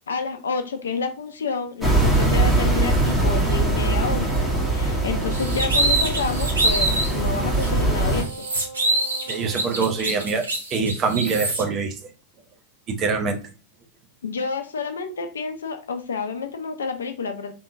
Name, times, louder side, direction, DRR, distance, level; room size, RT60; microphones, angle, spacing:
voice 1, 0.1-8.5 14.2-17.5, left 5 dB, 70° left, 0.7 m, -29 dB
sound 1, 1.8-8.2, right 2 dB, 5° right, 1.7 m, -22 dB
Wind instrument woodwind instrument, 3.0-10.3, right 4 dB, 55° right, 1.4 m, -40 dB
sound 2, 5.3-7.1 7.6-7.7 8.1-11.6, right 2 dB, 70° right, 1.3 m, -25 dB
voice 2, 9.3-10.4 10.7-11.9 13.0-13.4, right 5 dB, 30° right, 0.9 m, -24 dB
4.5 x 3.5 x 2.7 m
figure-of-eight pair, 90°, 0 cm